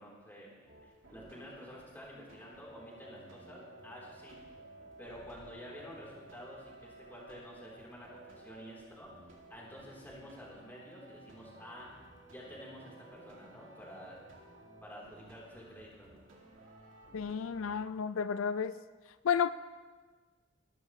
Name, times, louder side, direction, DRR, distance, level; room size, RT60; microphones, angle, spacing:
voice 1, 0.0-4.3 5.0-9.1 9.5-11.9 12.3-14.2 14.8-16.2, equal, 10° left, -5 dB, 3.7 m, -50 dB
sound 1, 0.7-17.9, right 2 dB, 75° right, 2.6 m, -56 dB
voice 2, 17.1-18.8 19.2-19.5, left 7 dB, 85° left, 13 dB, 0.4 m, -31 dB
21.0 x 12.5 x 3.2 m, 1.4 s
head